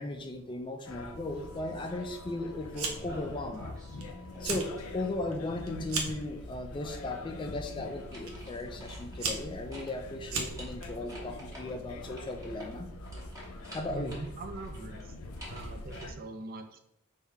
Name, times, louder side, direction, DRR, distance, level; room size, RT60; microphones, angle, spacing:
voice 1, 0.0-3.6 4.4-12.9 13.7-14.1, left 2 dB, 20° left, 5 dB, 0.4 m, -37 dB
sound 1, 0.8-16.1, left 2 dB, 85° left, 0.5 m, -44 dB
Fire, 2.7-3.2 3.5-4.0 4.3-4.7 5.1-6.3 7.1-7.4 8.3-8.4 8.9-10.9, right 4 dB, 75° right, 0.7 m, -35 dB
sound 2, 3.1-4.0 4.3-5.6 7.8-9.5 9.7-9.9 10.3-14.3 14.6-16.1, equal, 15° right, 1.1 m, -49 dB
voice 2, 13.9-15.0 15.5-16.8, right 3 dB, 45° right, 6 dB, 0.5 m, -42 dB
3.5 x 2.7 x 4.5 m, 0.75 s
head